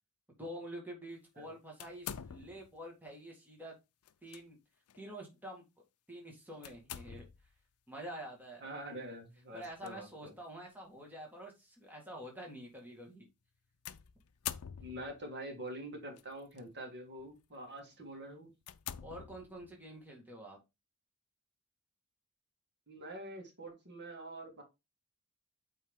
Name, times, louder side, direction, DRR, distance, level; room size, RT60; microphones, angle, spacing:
voice 1, 0.3-3.7 4.2-4.6 5.0-5.6 6.1-7.2 7.9-8.7 9.5-13.2 19.0-20.6, right 1 dB, 10° right, 1.8 m, -47 dB
sound 1, 1.8-2.8 4.1-4.4 4.9-5.0 6.6-7.5 9.6-9.9 10.7-10.8 13.9-15.3 16.2-16.6 17.2-17.4 17.9-18.0 18.6-19.8, left 10 dB, 75° left, 0.5 m, -45 dB
voice 2, 8.6-10.3 14.8-18.5 22.9-24.6, right 1 dB, 50° right, 2.1 m, -45 dB
8.6 x 3.7 x 3.6 m
head